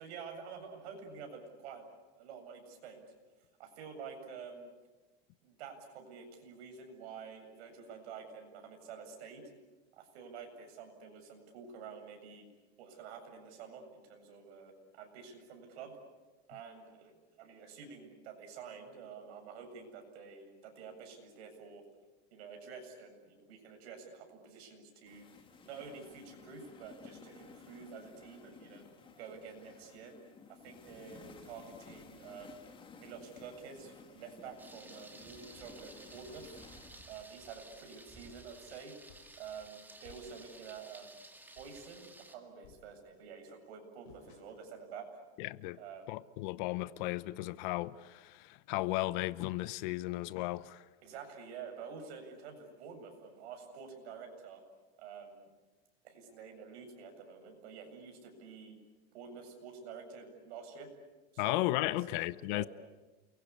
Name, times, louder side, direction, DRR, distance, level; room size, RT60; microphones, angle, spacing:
voice 1, 0.0-1.9 2.2-3.0 3.6-4.7 5.4-9.5 9.9-12.5 12.8-16.0 16.5-21.8 22.3-25.3 25.6-28.8 29.1-30.1 30.5-32.6 33.0-36.5 37.1-39.0 39.4-41.1 41.5-45.1 45.8-46.1 51.0-54.6 55.0-55.5 56.0-58.8 59.1-60.9 61.3-62.2 62.5-62.7, right 6 dB, 65° right, 7.7 m, -49 dB
sound 1, 25.1-37.0, left 5 dB, 15° left, 2.2 m, -56 dB
Thunder, 34.6-42.3, right 2 dB, 5° right, 2.0 m, -55 dB
sound 2, 39.1-39.5 40.0-40.6 41.0-41.2 41.6-41.9 42.6-43.3 44.1-44.8, left 7 dB, 65° left, 4.9 m, -60 dB
voice 2, 45.4-45.8 46.1-50.8 61.4-62.7, left 18 dB, 45° left, 0.8 m, -35 dB
29.0 x 23.0 x 8.6 m
supercardioid pair, 160°, 34 cm